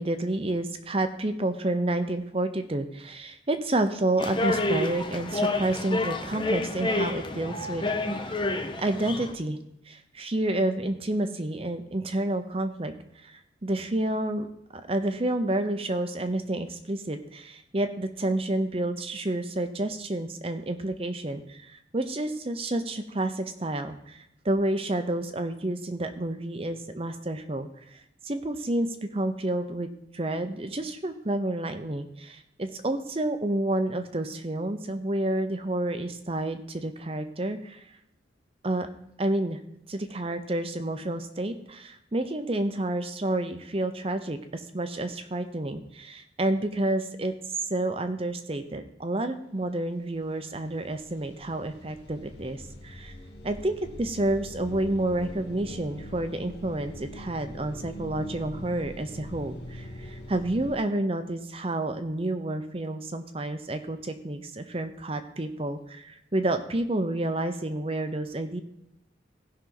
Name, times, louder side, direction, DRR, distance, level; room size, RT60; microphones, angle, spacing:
voice 1, 0.0-8.4 8.8-9.6 9.9-12.9 13.2-14.5 14.9-27.7 27.9-37.9 38.6-38.9 39.2-39.6 39.9-47.3 47.7-53.1 53.4-68.6, right 1 dB, 30° right, 8 dB, 0.7 m, -29 dB
sound 1, 4.2-9.3, left 2 dB, 25° left, 0.7 m, -29 dB
sound 2, 49.7-49.8 50.1-60.8, left 1 dB, 60° left, 1.1 m, -43 dB
16.5 x 5.7 x 3.9 m, 0.79 s
head